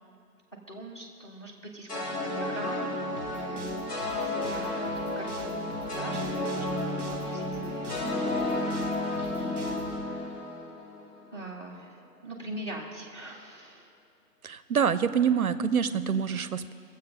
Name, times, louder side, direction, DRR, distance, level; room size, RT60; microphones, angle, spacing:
voice 1, 0.7-4.9 5.2-5.6 6.0-10.4 11.3-13.9, right 2 dB, 15° left, 1 dB, 0.9 m, -43 dB
sound 1, 1.9-11.2, left 1 dB, 65° left, 2.3 m, -32 dB
sound 2, 3.1-10.0, right 2 dB, 15° right, 0.8 m, -45 dB
voice 2, 14.4-16.7, right 7 dB, 65° right, 14 dB, 0.5 m, -26 dB
20.0 x 7.5 x 5.4 m, 2.3 s
hypercardioid pair, 165°, 48 cm